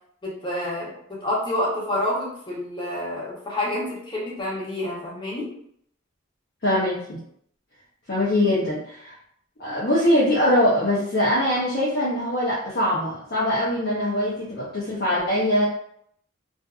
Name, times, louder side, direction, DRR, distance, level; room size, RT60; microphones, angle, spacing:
voice 1, 0.2-5.6, left 1 dB, 25° left, -5 dB, 0.9 m, -28 dB
voice 2, 6.6-7.2 8.1-9.1 9.6-15.6, left 1 dB, 55° left, -7 dB, 0.7 m, -22 dB
2.5 x 2.4 x 2.3 m, 0.67 s
head